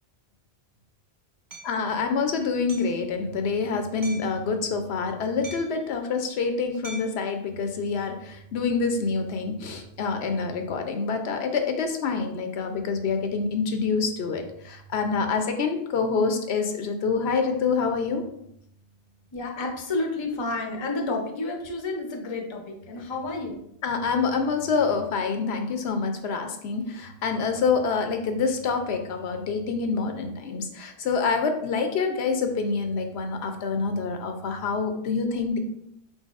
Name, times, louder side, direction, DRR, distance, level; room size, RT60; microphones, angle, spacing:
Hammer, 1.5-1.7 2.7-3.0 4.0-4.4 5.4-5.8 6.8-7.2, right 3 dB, 20° right, 0.7 m, -41 dB
voice 1, 1.6-18.2 23.8-35.6, left 5 dB, 75° left, 5 dB, 0.8 m, -26 dB
voice 2, 19.3-23.6, left 2 dB, 30° left, 2 dB, 0.6 m, -30 dB
4.4 x 4.0 x 2.4 m, 0.74 s
omnidirectional pair, 1.1 m